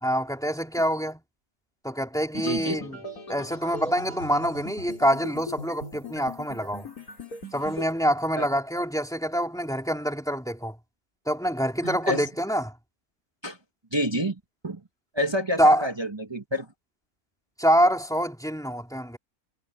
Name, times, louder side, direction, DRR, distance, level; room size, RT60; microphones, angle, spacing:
voice 1, 0.0-1.2 1.8-3.0 3.3-6.9 7.5-10.8 11.3-12.7 15.6-15.9 17.6-19.2, equal, ahead, 3.3 m, -25 dB
sound 1, 2.3-7.9, left 2 dB, 90° left, 6.5 m, -39 dB
voice 2, 2.4-2.8 8.4-8.5 11.8-12.3 13.4-13.6 13.9-14.8 15.1-16.7, equal, 20° right, 1.4 m, -28 dB
omnidirectional pair, 1.5 m